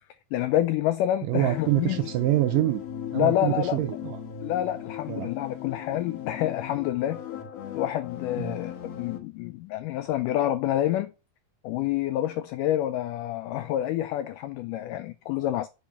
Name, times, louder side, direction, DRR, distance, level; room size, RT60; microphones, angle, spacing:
voice 1, 0.3-2.0 3.1-3.8 4.4-7.2 7.7-11.1 11.6-15.7, left 13 dB, 90° left, 1.8 m, -28 dB
sound 1, 1.3-9.2, left 9 dB, 65° left, 1.8 m, -38 dB
voice 2, 1.3-2.8 3.1-4.2 5.1-5.3 8.4-8.6, right 16 dB, 80° right, 2.0 m, -25 dB
8.5 x 4.2 x 5.7 m
omnidirectional pair, 4.3 m